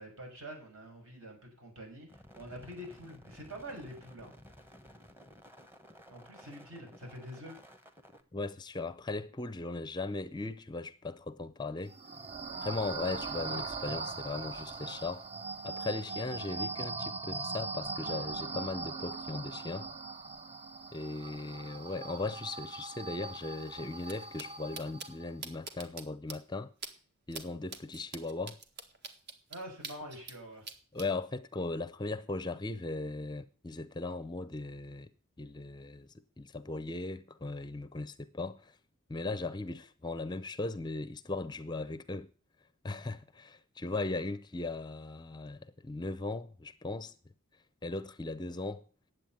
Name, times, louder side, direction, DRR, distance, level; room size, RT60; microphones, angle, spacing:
voice 1, 0.0-4.3 6.1-7.6 29.5-30.7, equal, 65° right, 6.4 m, -46 dB
sound 1, 2.1-8.2, equal, 10° right, 1.3 m, -55 dB
voice 2, 8.3-12.0 12.6-15.3 15.6-19.9 20.9-26.7 27.3-28.6 30.9-35.1 35.4-38.8 39.1-42.3 42.8-47.2 47.8-48.8, left 3 dB, 20° left, 0.5 m, -38 dB
sound 2, 11.9-25.3, right 4 dB, 30° right, 0.7 m, -40 dB
pigeon footsteps on parquet floor, 24.0-24.1 24.4-24.5 24.7-25.1 25.4-26.0 26.3-26.4 26.8-26.9 27.3-27.4 27.7-30.4 30.6-31.1, right 4 dB, 50° right, 1.7 m, -43 dB
10.5 x 8.0 x 9.1 m
head